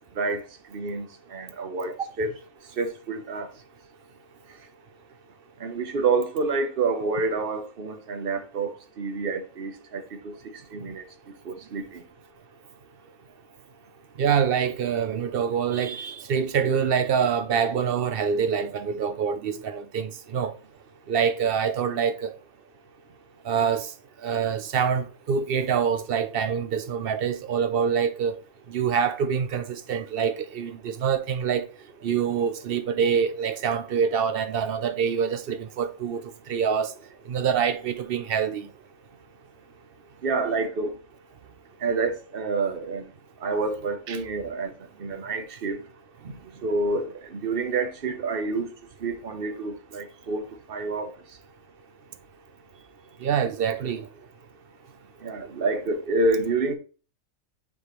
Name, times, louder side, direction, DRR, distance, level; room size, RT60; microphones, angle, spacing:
voice 1, 0.7-1.1 1.3-2.3 2.8-3.5 5.6-8.7 9.0-10.3 10.7-11.0 11.5-11.8 40.2-40.9 41.8-43.1 43.4-44.7 45.0-45.8 46.6-47.1 47.3-48.7 49.0-50.4 50.7-51.1 55.2-56.7, right 3 dB, 45° right, 1.0 m, -28 dB
voice 2, 14.2-20.5 21.1-22.3 23.5-23.9 24.2-28.4 28.7-31.7 32.0-36.2 36.5-36.9 37.3-38.7 44.1-44.2 53.2-54.1, right 7 dB, 65° right, 0.6 m, -25 dB
9.3 x 3.5 x 3.1 m
omnidirectional pair, 1.5 m